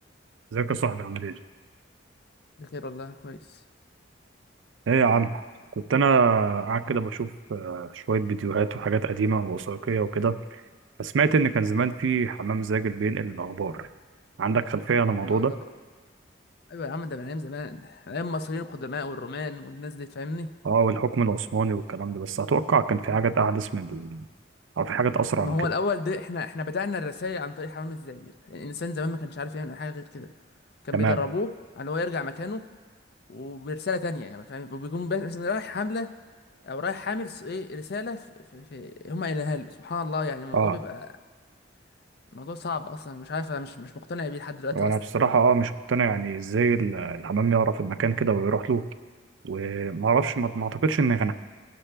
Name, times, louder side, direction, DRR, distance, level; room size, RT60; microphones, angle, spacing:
voice 1, 0.5-1.4 4.9-5.4 5.9-10.4 11.0-13.9 14.4-15.6 20.6-24.3 24.8-25.6 30.9-31.2 40.5-40.8 44.8-48.8 49.4-51.3, right 5 dB, 80° right, 11 dB, 0.5 m, -24 dB
voice 2, 2.6-3.4 15.3-15.4 16.7-20.5 25.4-30.3 30.8-31.5 31.8-32.6 33.3-36.1 36.6-38.2 38.5-41.1 42.3-44.9, left 3 dB, 55° left, 11 dB, 0.5 m, -32 dB
17.5 x 6.8 x 3.3 m, 1.4 s
head